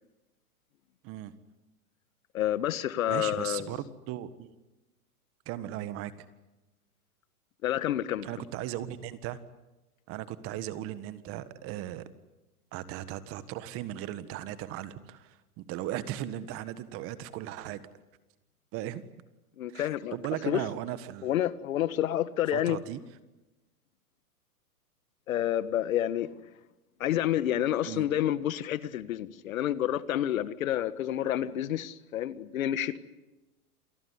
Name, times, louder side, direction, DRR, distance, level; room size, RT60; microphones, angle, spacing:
voice 1, 2.3-3.7 7.6-8.3 19.6-20.1 20.4-20.6 21.2-22.8 25.3-26.3 27.0-33.0, left 12 dB, 60° left, 1.6 m, -29 dB
voice 2, 3.1-4.5 5.4-6.1 8.2-9.4 10.1-12.1 12.7-17.8 18.7-19.1 19.7-21.3 22.5-23.0 27.8-28.1, right 13 dB, 30° right, 1.6 m, -37 dB
28.0 x 19.0 x 9.8 m
hypercardioid pair, 135°, 45 cm